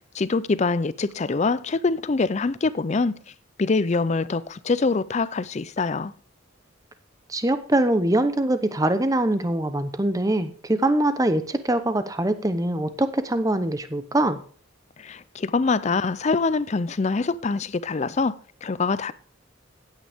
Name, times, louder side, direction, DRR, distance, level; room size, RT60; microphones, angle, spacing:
voice 1, 0.1-3.2 3.6-6.1 15.0-19.1, left 4 dB, 35° left, 0.4 m, -24 dB
voice 2, 7.3-14.4, right 1 dB, 15° right, 0.8 m, -23 dB
15.5 x 8.9 x 3.5 m
head